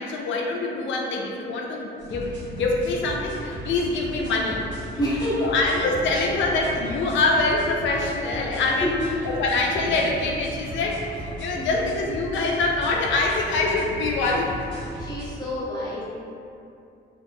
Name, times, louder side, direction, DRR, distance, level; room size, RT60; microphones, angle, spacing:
voice 1, 0.0-4.6 5.4-8.9 9.2-14.5, left 3 dB, 70° left, 0 dB, 0.4 m, -24 dB
sound 1, 2.0-15.3, equal, 65° right, 0.7 m, -37 dB
voice 2, 5.0-5.5 8.8-9.1 11.5-11.8 15.0-16.0, equal, 20° left, -9 dB, 0.9 m, -27 dB
2.8 x 2.5 x 2.3 m, 2.6 s
cardioid pair, 90°, 20 cm